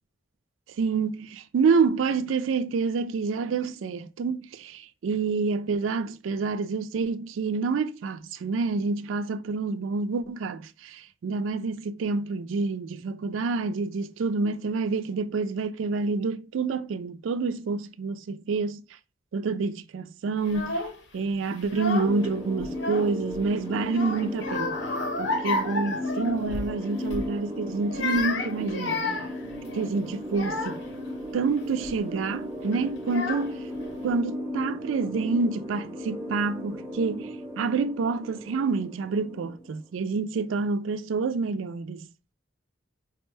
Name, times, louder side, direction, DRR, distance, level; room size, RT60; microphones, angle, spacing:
voice 1, 0.8-18.8 19.3-20.8 21.1-24.8 25.2-29.0 29.7-30.8 31.3-33.6 34.0-42.0, right 4 dB, 85° right, 0.3 m, -28 dB
Child speech kid speaking / Crying sobbing, 20.4-21.0 21.6-22.3 22.6-23.4 23.9-26.7 27.1-27.3 27.8-31.0 31.6-32.0 32.7-32.8 33.1-33.8, left 3 dB, 70° left, 0.7 m, -32 dB
sound 1, 22.1-39.8, left 1 dB, 15° right, 0.5 m, -36 dB
5.0 x 2.1 x 3.2 m
head